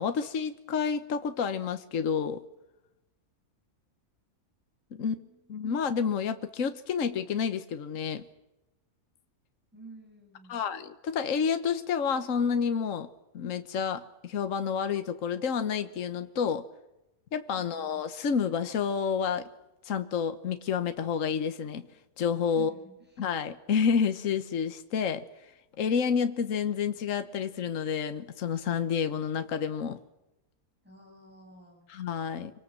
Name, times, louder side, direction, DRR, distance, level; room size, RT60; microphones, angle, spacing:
voice 1, 0.0-2.4 5.0-5.1 5.5-8.3 10.5-13.1 13.3-16.7 17.3-19.5 19.8-21.9 22.2-22.7 23.2-25.2 25.8-30.0 31.9-32.5, left 6 dB, 65° left, 9 dB, 1.4 m, -29 dB
voice 2, 5.0-5.8 9.7-10.6 17.6-18.0 22.5-23.3 30.8-31.9, right 3 dB, 5° right, 1 dB, 7.3 m, -51 dB
26.0 x 25.0 x 7.5 m, 0.95 s
omnidirectional pair, 1.5 m